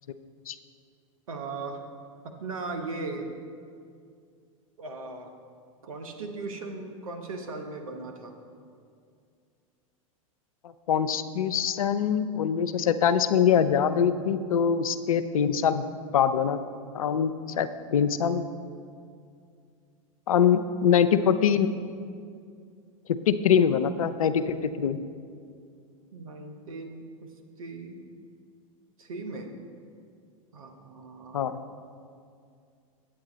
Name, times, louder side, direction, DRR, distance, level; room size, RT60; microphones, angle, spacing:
voice 1, 1.3-1.8 2.4-3.3 4.8-5.3 5.8-8.3 26.1-27.3 27.6-28.1 29.0-29.5 30.5-31.4, right 3 dB, 80° right, 4 dB, 1.0 m, -38 dB
voice 2, 10.9-15.8 16.1-16.6 16.9-18.5 20.3-21.7 23.1-25.0 31.3-31.6, left 8 dB, 80° left, 12 dB, 0.5 m, -23 dB
8.7 x 8.2 x 3.9 m, 2.3 s
hypercardioid pair, 90°, 18 cm